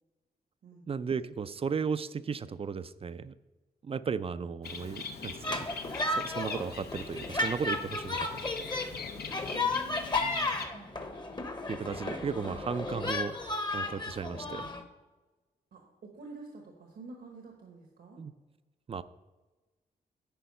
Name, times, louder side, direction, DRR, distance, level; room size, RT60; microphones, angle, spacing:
voice 1, 0.9-3.3 3.8-5.7 6.1-8.4 11.7-13.3 13.7-14.7 18.2-18.3 18.9-19.0, right 6 dB, 35° right, 14 dB, 0.4 m, -35 dB
Bird, 4.6-10.7, left 5 dB, 75° left, 0.8 m, -41 dB
sound 1, 5.4-14.8, left 2 dB, 25° left, 1.0 m, -34 dB
voice 2, 9.4-11.1 15.7-18.2, right 3 dB, 80° right, 1 dB, 1.2 m, -49 dB
10.0 x 4.7 x 5.3 m, 1.2 s
cardioid pair, 90°, 17 cm